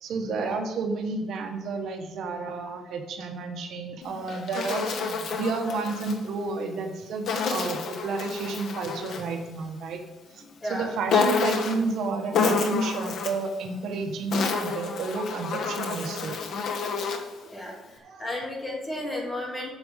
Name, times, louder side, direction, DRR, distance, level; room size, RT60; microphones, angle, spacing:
voice 1, 0.0-10.0 10.3-10.4 10.7-16.4 18.0-18.2, right 4 dB, 70° right, 5 dB, 1.3 m, -31 dB
Insect, 4.0-6.2 7.3-9.3 11.1-11.9 12.3-13.5 14.1-17.4, left 5 dB, 65° left, 1.3 m, -28 dB
voice 2, 10.6-10.9 17.4-19.7, left 1 dB, 15° left, -2 dB, 3.1 m, -34 dB
8.7 x 6.3 x 7.3 m, 1.1 s
cardioid pair, 120°, 0 cm